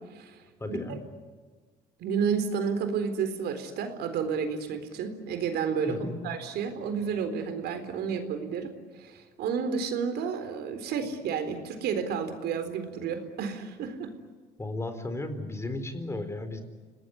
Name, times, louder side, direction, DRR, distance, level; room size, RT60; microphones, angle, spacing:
voice 1, 0.6-1.0 5.9-6.2 14.6-16.6, left 2 dB, 15° left, 9 dB, 4.3 m, -34 dB
voice 2, 2.0-6.0 6.2-8.7 9.0-14.1, right 6 dB, 75° right, 9 dB, 4.0 m, -31 dB
28.5 x 19.5 x 9.9 m, 1.5 s
cardioid pair, 110°, 17 cm